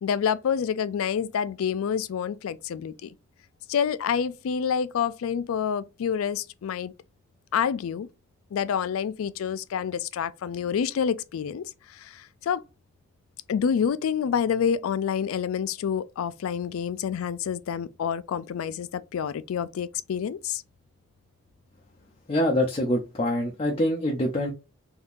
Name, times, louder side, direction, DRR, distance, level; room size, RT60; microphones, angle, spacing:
voice 1, 0.0-3.1 3.7-6.9 7.5-8.1 8.5-11.6 11.9-12.6 13.5-20.6, left 7 dB, 80° left, 0.3 m, -28 dB
voice 2, 22.3-24.5, left 1 dB, 30° left, 0.5 m, -25 dB
3.6 x 2.7 x 2.4 m
head